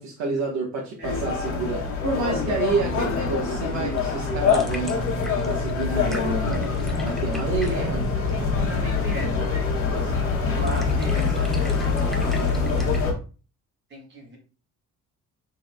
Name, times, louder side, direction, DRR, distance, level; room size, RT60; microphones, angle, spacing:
voice 1, 0.0-5.0 5.4-6.7 7.0-8.1, right 3 dB, 70° right, 1.3 m, -29 dB
sound 1, 1.0-13.1, left 4 dB, 45° left, 1.5 m, -25 dB
voice 2, 1.0-1.3 7.7-7.9 8.3-12.9 13.9-14.4, equal, 35° right, 1.7 m, -38 dB
sound 2, 2.8-6.7, left 7 dB, 75° left, 0.7 m, -39 dB
sound 3, 3.9-13.1, left 1 dB, ahead, 0.5 m, -43 dB
6.6 x 3.6 x 2.2 m
cardioid pair, 175°, 30 cm